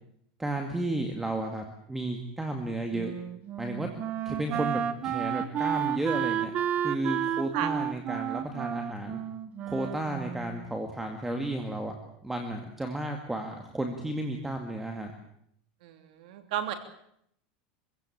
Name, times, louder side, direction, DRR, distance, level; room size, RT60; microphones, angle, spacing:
voice 1, 0.4-3.1 3.6-3.9 4.2-6.5 6.8-9.2 9.7-15.1, right 1 dB, 5° right, 4 dB, 2.2 m, -33 dB
Wind instrument woodwind instrument, 2.9-10.7, right 9 dB, 35° right, 1.3 m, -31 dB
voice 2, 15.8-16.7, right 11 dB, 70° right, 7 dB, 3.2 m, -33 dB
26.0 x 16.0 x 8.7 m, 0.72 s
supercardioid pair, 150°, 5 cm